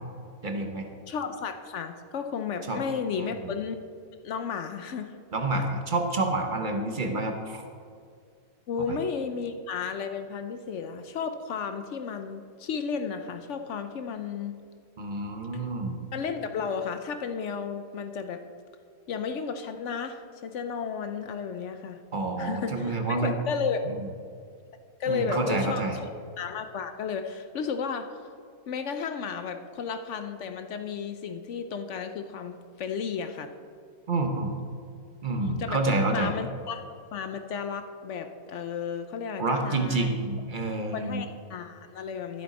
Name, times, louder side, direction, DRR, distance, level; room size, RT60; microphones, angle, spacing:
voice 1, 0.4-0.9 2.7-2.8 3.2-3.6 5.3-7.6 8.9-9.0 15.0-16.0 22.1-23.4 23.8-24.1 25.1-26.0 34.1-34.6 35.2-36.3 39.4-41.2, right 2 dB, 40° right, 4 dB, 0.8 m, -28 dB
voice 2, 1.1-3.8 4.2-5.1 8.7-14.5 15.5-15.6 16.1-18.4 19.1-22.0 22.4-23.8 25.0-25.8 26.4-28.1 28.7-33.5 35.4-35.8 36.1-36.8 37.1-40.1 40.9-42.4, left 6 dB, 65° left, 8 dB, 0.7 m, -33 dB
12.5 x 7.8 x 4.1 m, 2.3 s
omnidirectional pair, 1.7 m